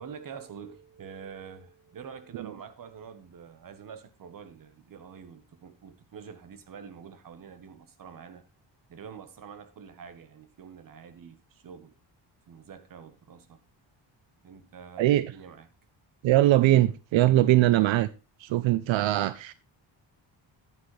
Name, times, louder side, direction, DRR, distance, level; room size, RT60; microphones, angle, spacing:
voice 1, 0.0-8.4 8.9-11.9 12.5-13.6 14.4-15.7, right 7 dB, 45° right, 1.2 m, -46 dB
voice 2, 15.0-15.3 16.2-18.1 18.4-19.5, right 15 dB, 80° right, 0.6 m, -21 dB
11.0 x 9.6 x 3.2 m
wide cardioid pair, 155°, 45 cm